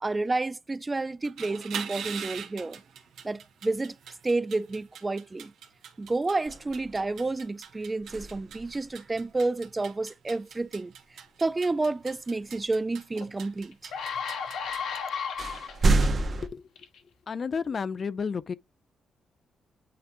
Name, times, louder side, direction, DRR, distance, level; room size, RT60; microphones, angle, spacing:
voice 1, 0.0-2.8 3.2-5.5 6.0-13.9, right 3 dB, 25° right, 0.4 m, -30 dB
sound 1, 1.1-15.0, right 7 dB, 85° right, 1.2 m, -43 dB
sound 2, 6.4-7.2 8.0-9.0 12.5-12.6 14.6-14.7 15.4-16.5, right 3 dB, 50° right, 0.7 m, -27 dB
sound 3, 13.1-13.2 13.7-16.1 16.8-17.0, left 6 dB, 85° left, 1.5 m, -34 dB
voice 2, 16.3-16.6 17.3-18.5, left 5 dB, 45° left, 0.4 m, -31 dB
9.3 x 4.2 x 2.6 m
cardioid pair, 80°, 0 cm